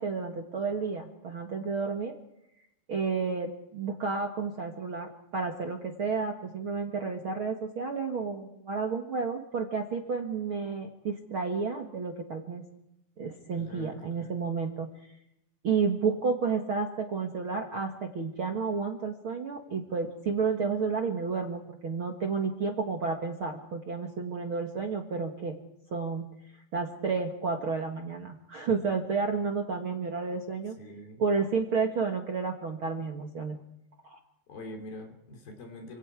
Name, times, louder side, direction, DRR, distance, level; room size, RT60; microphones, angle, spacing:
voice 1, 0.0-2.1 2.9-12.6 13.2-14.9 15.6-25.6 25.9-26.2 26.7-30.8 31.2-33.6 34.0-34.2, right 5 dB, 45° right, 3 dB, 1.9 m, -31 dB
voice 2, 13.5-14.3 30.8-31.2 34.5-36.0, left 1 dB, 70° left, 4 dB, 5.0 m, -44 dB
28.0 x 26.0 x 4.8 m, 0.83 s
omnidirectional pair, 4.3 m